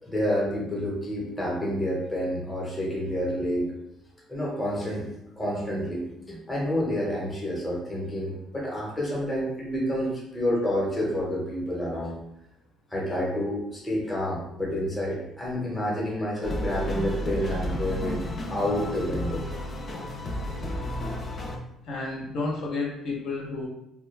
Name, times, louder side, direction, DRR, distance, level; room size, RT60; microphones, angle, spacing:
voice 1, 0.0-3.7 4.3-5.1 5.4-12.2 12.9-18.2 18.5-19.4, equal, 15° left, -4 dB, 0.9 m, -29 dB
sound 1, 16.4-21.6, left 1 dB, 30° left, 0.5 m, -32 dB
voice 2, 21.8-23.7, left 3 dB, 70° left, -4 dB, 0.7 m, -31 dB
2.3 x 2.1 x 3.2 m, 0.82 s
cardioid pair, 120°, 0 cm